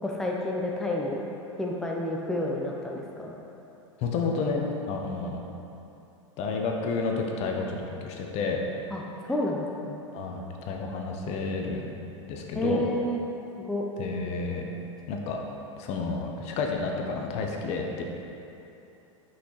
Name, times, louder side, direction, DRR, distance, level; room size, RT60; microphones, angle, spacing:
voice 1, 0.0-1.2 1.6-3.3 8.9-9.0 9.3-10.0 12.5-13.2 13.6-13.9, left 1 dB, 5° left, -2 dB, 0.7 m, -30 dB
voice 2, 4.0-5.4 6.4-8.6 10.1-11.8 12.3-12.8 14.0-14.7 15.1-15.4 15.8-18.0, left 4 dB, 40° left, 1 dB, 0.9 m, -30 dB
8.1 x 5.7 x 3.2 m, 2.9 s
figure-of-eight pair, 90°, 17 cm